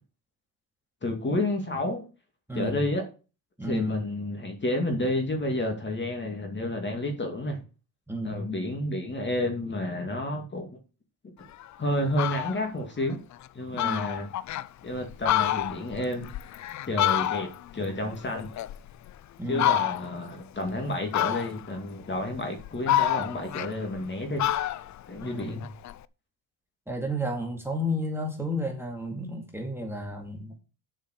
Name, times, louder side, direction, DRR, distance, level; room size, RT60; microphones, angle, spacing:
voice 1, 1.0-2.1 2.5-3.0 3.7-7.6 8.2-10.7 11.8-13.2 13.5-14.3 14.8-16.3 16.9-18.5 19.5-24.4 25.1-25.6, left 1 dB, 25° left, 4 dB, 2.4 m, -30 dB
voice 2, 2.5-2.8 3.6-4.0 8.1-8.4 13.7-14.1 19.4-19.8 25.2-25.7 26.9-30.6, equal, 5° right, 1 dB, 2.3 m, -32 dB
Fowl, 11.5-11.6 12.0-12.6 13.1-13.2 13.5-13.6 13.8-14.7 15.1-17.7 18.1-19.1 19.5-20.2 21.1-21.8 22.3-24.1 24.4-26.0, left 13 dB, 40° left, 0.5 m, -28 dB
7.4 x 5.6 x 6.5 m, 0.34 s
cardioid pair, 110°, 44 cm